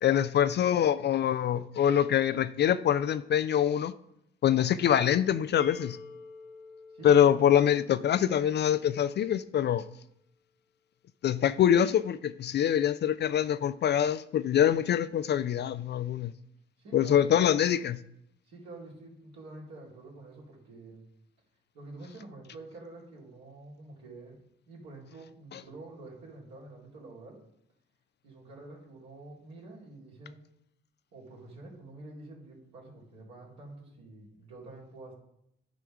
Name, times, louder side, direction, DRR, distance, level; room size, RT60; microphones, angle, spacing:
voice 1, 0.0-3.9 4.4-6.0 7.0-9.8 11.2-16.3 16.9-18.0 25.5-25.6, left 9 dB, 40° left, 0.4 m, -24 dB
sound 1, 5.6-9.3, left 4 dB, 70° left, 0.7 m, -50 dB
voice 2, 6.9-7.4 16.8-17.3 18.4-21.0 21.7-24.4 24.7-27.4 28.2-30.4 31.1-35.1, right 2 dB, 70° right, 2.4 m, -48 dB
10.0 x 3.5 x 5.8 m
figure-of-eight pair, 40°, 29 cm